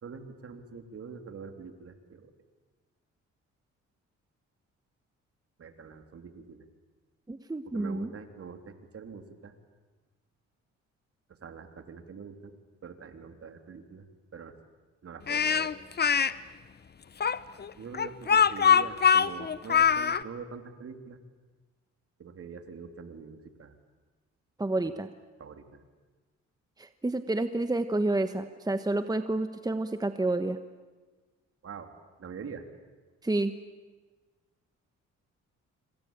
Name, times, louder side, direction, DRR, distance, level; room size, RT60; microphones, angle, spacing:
voice 1, 0.0-2.3 5.6-6.6 7.6-9.5 11.4-12.5 12.8-14.1 14.3-14.5 15.0-15.7 17.8-21.2 22.2-23.7 24.8-24.9 25.4-25.8 31.6-31.9 32.2-32.6, right 5 dB, 50° right, 7 dB, 3.2 m, -44 dB
voice 2, 7.3-8.1 24.6-25.1 26.8-30.6 33.2-33.5, right 2 dB, 10° right, 9 dB, 1.2 m, -29 dB
Speech, 15.3-16.3 17.2-20.2, left 7 dB, 35° left, 0.9 m, -23 dB
26.5 x 25.0 x 8.9 m, 1.3 s
cardioid pair, 90°, 30 cm